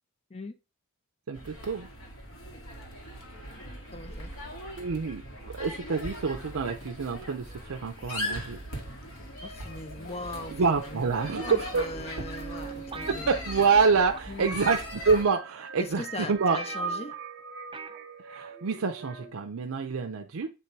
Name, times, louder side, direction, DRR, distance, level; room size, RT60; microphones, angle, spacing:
sound 1, 1.3-15.2, left 1 dB, 70° left, 1.9 m, -40 dB
voice 1, 1.3-1.9 4.8-8.6 10.5-11.8 13.1-16.6 18.2-20.5, right 5 dB, 70° right, 0.5 m, -27 dB
voice 2, 3.9-4.3 9.4-11.1 11.4-13.3 14.3-14.6 15.8-17.2, left 2 dB, 30° left, 0.6 m, -40 dB
sound 2, 9.8-19.3, right 5 dB, 55° right, 1.1 m, -43 dB
sound 3, 11.5-12.1 12.9-13.9 14.1-14.5 15.3-15.4 15.9-16.0 16.2-16.3 16.5-17.2 17.7-18.0 18.3-18.4, right 3 dB, 25° right, 0.5 m, -41 dB
8.0 x 3.1 x 4.5 m
head